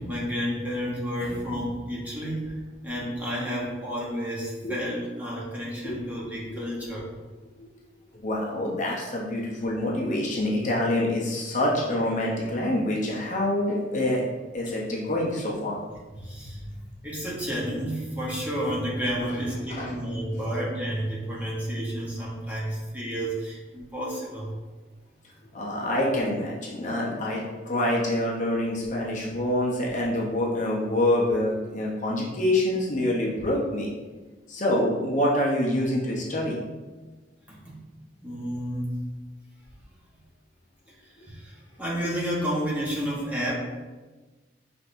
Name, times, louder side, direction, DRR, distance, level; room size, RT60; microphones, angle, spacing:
voice 1, 0.0-2.6 2.8-7.1 16.2-16.6 17.0-24.5 37.5-37.7 38.2-39.0 41.3-43.5, equal, 10° right, -6 dB, 1.0 m, -31 dB
voice 2, 8.2-14.2 14.5-15.8 19.7-19.9 25.5-33.9 34.5-36.6, left 1 dB, 40° left, -3 dB, 0.7 m, -26 dB
5.8 x 3.4 x 2.6 m, 1.3 s
head